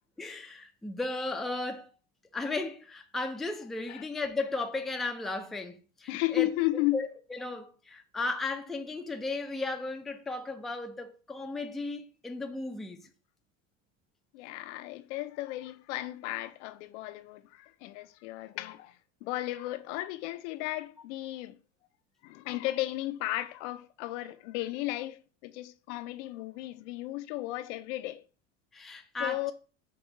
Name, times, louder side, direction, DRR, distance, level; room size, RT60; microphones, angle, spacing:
voice 1, 0.2-1.9 2.3-13.1 28.7-29.5, left 3 dB, ahead, 0.4 m, -35 dB
voice 2, 6.1-7.0 14.3-21.6 22.2-28.2 29.2-29.5, left 17 dB, 70° left, 0.5 m, -34 dB
5.2 x 2.3 x 3.9 m
supercardioid pair, 105°, 37 cm